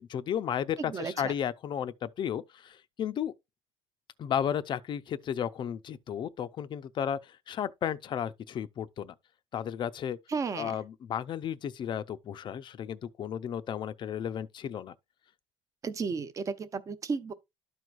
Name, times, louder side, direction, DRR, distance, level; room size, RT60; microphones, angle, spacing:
voice 1, 0.0-3.3 4.2-9.1 9.5-10.2 10.5-14.9, left 9 dB, 40° left, 0.6 m, -33 dB
voice 2, 0.8-1.3 10.3-10.7 15.8-17.3, right 5 dB, 30° right, 0.7 m, -33 dB
12.5 x 4.7 x 2.5 m
cardioid pair, 140°, 12 cm